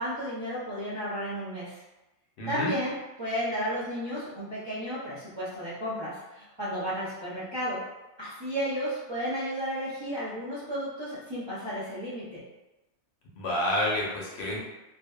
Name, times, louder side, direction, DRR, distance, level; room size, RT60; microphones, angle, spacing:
voice 1, 0.0-1.8 2.5-7.8 8.2-12.4, equal, 35° right, -11 dB, 0.4 m, -33 dB
voice 2, 2.4-2.7 13.4-14.6, left 1 dB, 65° left, -4 dB, 0.9 m, -29 dB
2.6 x 2.2 x 2.2 m, 1.0 s
omnidirectional pair, 1.3 m